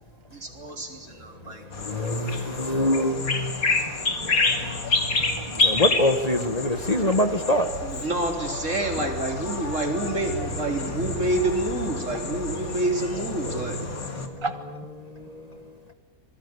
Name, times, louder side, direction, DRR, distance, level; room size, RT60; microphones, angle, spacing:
voice 1, 0.3-1.6 7.8-13.8, right 1 dB, 60° right, 3 dB, 4.1 m, -28 dB
sound 1, 1.7-14.3, left 3 dB, 75° left, 2.9 m, -29 dB
voice 2, 1.8-3.7 4.6-5.0 5.6-7.7 13.4-13.7 14.1-14.3, left 1 dB, 30° left, 8 dB, 1.5 m, -25 dB
voice 3, 4.0-5.8 7.1-7.2 12.0-12.5 13.4-14.9 15.5-15.6, right 3 dB, 20° right, 9 dB, 1.0 m, -39 dB
26.5 x 21.5 x 9.7 m, 1.3 s
omnidirectional pair, 1.5 m